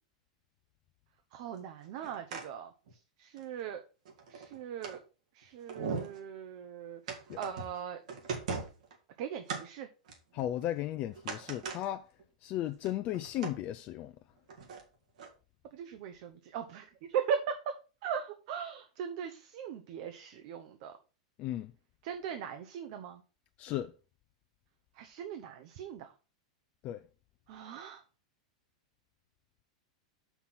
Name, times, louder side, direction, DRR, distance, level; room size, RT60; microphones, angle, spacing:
voice 1, 1.3-2.7 3.2-3.8 4.3-5.0 5.4-8.0 9.2-9.9 15.7-17.7 18.0-20.9 22.0-23.2 25.0-26.1 27.5-28.0, right 7 dB, 55° right, 0.9 m, -39 dB
sound 1, 1.8-2.5 2.9-3.0 3.4-3.5 4.1-5.0 5.4-5.5 5.7-6.2 7.1-7.8 8.1-8.9 9.5-9.6 10.1-10.8 11.1-11.8 12.2-12.3 12.7-13.6 14.5-14.8 15.2-15.3, right 5 dB, 75° right, 2.3 m, -39 dB
voice 2, 10.3-12.1 12.4-14.1 21.4-21.7 23.6-23.9 26.8-27.0, left 13 dB, 40° left, 0.5 m, -35 dB
5.9 x 5.8 x 5.8 m
hypercardioid pair, 115°, 4 cm